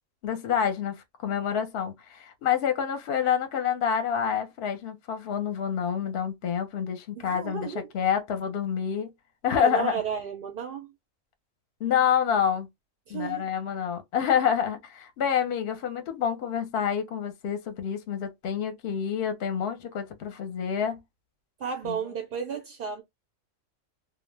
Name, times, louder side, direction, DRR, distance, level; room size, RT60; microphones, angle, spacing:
voice 1, 0.2-1.0 1.2-7.7 7.9-9.1 9.4-10.0 11.8-12.7 13.1-21.0 21.8-22.0, left 8 dB, 60° left, 0.8 m, -27 dB
voice 2, 7.2-7.9 9.6-10.9 13.1-13.4 21.6-23.0, right 7 dB, 65° right, 0.6 m, -33 dB
2.2 x 2.0 x 3.2 m
omnidirectional pair, 1.4 m